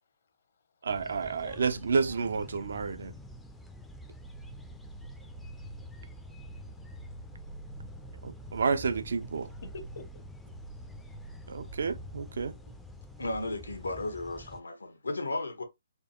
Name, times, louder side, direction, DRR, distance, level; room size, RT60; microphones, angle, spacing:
voice 1, 0.8-3.1 8.2-9.5 11.5-12.5, right 5 dB, 65° right, 0.5 m, -30 dB
sound 1, 0.9-14.6, left 1 dB, 5° left, 0.4 m, -48 dB
sound 2, 4.2-12.5, right 2 dB, 90° right, 1.2 m, -48 dB
voice 2, 4.4-4.9 5.3-8.5 9.6-10.3, left 3 dB, 60° left, 0.8 m, -53 dB
voice 3, 13.2-15.6, left 2 dB, 85° left, 0.9 m, -34 dB
4.4 x 2.3 x 2.9 m
figure-of-eight pair, 135°, 0 cm